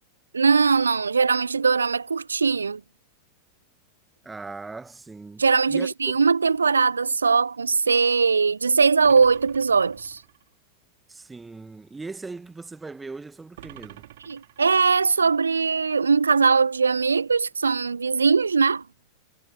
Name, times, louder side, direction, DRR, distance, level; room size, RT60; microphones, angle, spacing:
voice 1, 0.3-2.8 5.4-10.2 14.3-18.8, right 5 dB, 75° right, 0.4 m, -21 dB
voice 2, 4.2-6.2 11.1-14.0, right 3 dB, 10° right, 1.3 m, -39 dB
sound 1, 9.0-10.5 13.6-15.1, right 15 dB, 55° right, 3.4 m, -46 dB
figure-of-eight pair, 90°, 0 cm